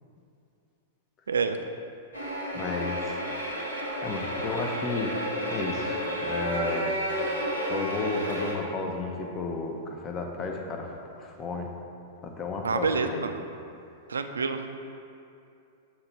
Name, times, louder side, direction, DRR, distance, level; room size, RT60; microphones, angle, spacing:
sound 1, 2.1-8.5, equal, 80° left, 1.4 m, -31 dB
voice 1, 2.5-3.2 4.0-5.2 5.4-6.9 7.7-11.7 12.2-13.3, left 4 dB, 25° left, 2 dB, 0.6 m, -33 dB
voice 2, 12.6-13.3 14.1-14.8, right 5 dB, 70° right, 7 dB, 0.3 m, -28 dB
7.6 x 2.9 x 4.3 m, 2.6 s
figure-of-eight pair, 100°, 0 cm